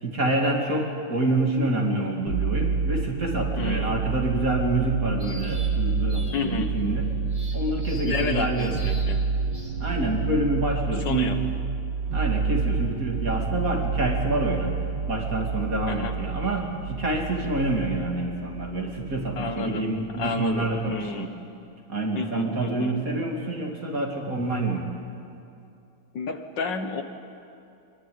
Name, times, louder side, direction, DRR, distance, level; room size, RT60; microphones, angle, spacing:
voice 1, 0.0-7.1 7.5-9.1 9.8-11.4 12.1-14.7 15.1-21.3 21.9-24.9, right 2 dB, 40° right, 1 dB, 3.3 m, -27 dB
sound 1, 2.3-19.7 20.0-20.8, right 5 dB, 65° right, 2.6 m, -29 dB
voice 2, 3.6-4.0 6.3-6.7 8.0-9.3 11.1-11.4 15.9-16.1 19.4-19.8 20.2-21.3 22.2-22.9 26.1-27.0, left 4 dB, 60° left, 7 dB, 1.9 m, -30 dB
sound 2, 5.2-5.7 6.1-6.4 7.3-8.3 8.5-9.1 9.5-9.7, equal, 15° right, 3.8 m, -44 dB
24.5 x 22.0 x 9.7 m, 2.6 s
omnidirectional pair, 2.2 m